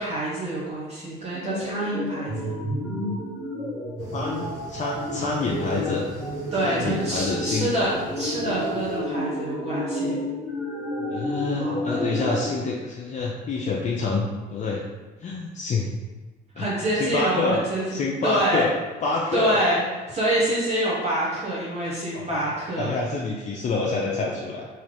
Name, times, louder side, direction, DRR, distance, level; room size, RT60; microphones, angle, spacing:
voice 1, 0.0-2.5 6.5-10.2 11.5-11.8 16.6-17.8 18.2-18.7 19.3-19.8 20.1-22.9, right 1 dB, 35° right, -7 dB, 1.2 m, -26 dB
sound 1, 1.3-12.5, left 1 dB, 5° right, 1.2 m, -30 dB
sound 2, 4.0-9.0, right 1 dB, 80° right, 1.1 m, -42 dB
voice 2, 4.1-6.0 6.6-7.7 11.1-14.8 15.2-15.9 16.6-16.7 16.9-17.6 17.9-18.7 19.0-19.6 22.1-22.4 22.8-24.7, left 3 dB, 40° left, -2 dB, 0.5 m, -27 dB
3.9 x 3.1 x 3.4 m, 1.3 s
cardioid pair, 105°, 19 cm